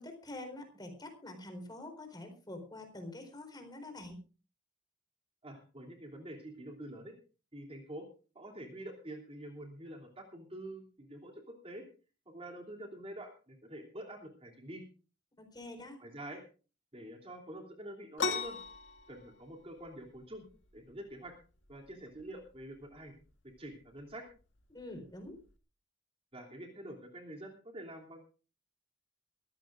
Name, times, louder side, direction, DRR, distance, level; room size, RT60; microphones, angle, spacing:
voice 1, 0.0-4.2 15.4-16.0 24.7-25.4, left 1 dB, 25° left, 5 dB, 4.3 m, -46 dB
voice 2, 5.4-7.1 7.5-8.1 8.3-11.8 12.3-14.8 16.0-16.4 16.9-18.6 19.1-20.4 20.7-21.3 21.7-23.1 23.6-24.3 26.3-28.2, right 1 dB, 30° right, 1 dB, 3.0 m, -46 dB
sound 1, 18.2-25.6, left 4 dB, 80° left, 2.1 m, -42 dB
23.5 x 15.0 x 2.5 m, 0.35 s
head